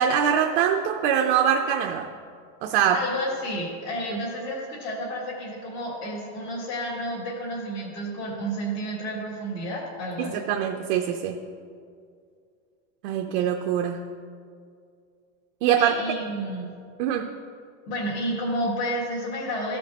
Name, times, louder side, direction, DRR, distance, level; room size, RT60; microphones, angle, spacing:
voice 1, 0.0-2.1 2.6-3.0 10.2-11.4 13.0-14.1 15.6-15.9 17.0-17.3, right 9 dB, 55° right, 3 dB, 0.5 m, -23 dB
voice 2, 2.9-10.5 15.8-16.7 17.9-19.8, equal, 65° left, -9 dB, 2.1 m, -31 dB
14.5 x 5.2 x 2.8 m, 2.3 s
supercardioid pair, 180°, 35 cm